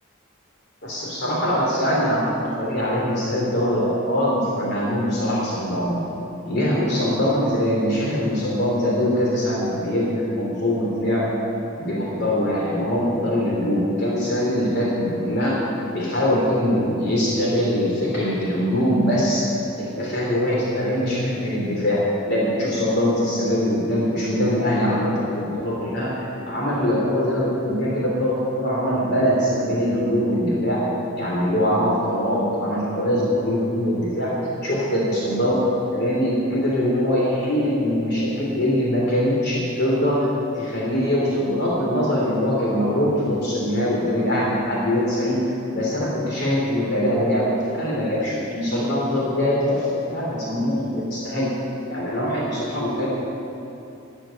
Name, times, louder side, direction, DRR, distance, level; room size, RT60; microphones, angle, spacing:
voice 1, 0.8-6.0 6.5-11.2 11.8-15.6 15.9-30.8 31.2-34.3 34.6-35.6 35.9-40.3 40.6-45.4 45.7-47.5 47.7-51.5 51.9-53.1, equal, 55° left, -5 dB, 3.3 m, -22 dB
13.0 x 8.9 x 8.9 m, 2.8 s
head